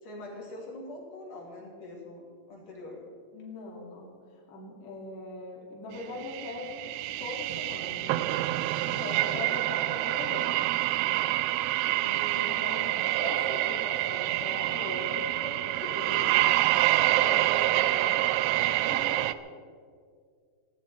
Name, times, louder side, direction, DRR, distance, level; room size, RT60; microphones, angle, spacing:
voice 1, 0.0-3.0 9.1-9.5 17.4-17.6, left 2 dB, 50° left, -2 dB, 4.5 m, -43 dB
voice 2, 3.3-6.9 7.2-8.2 8.8-10.6 11.0-11.4 11.8-18.3 18.7-19.4, left 2 dB, 70° left, -3 dB, 4.6 m, -40 dB
sound 1, 6.2-19.3, right 16 dB, 85° right, 2.3 m, -27 dB
19.5 x 16.0 x 4.6 m, 2.1 s
omnidirectional pair, 5.1 m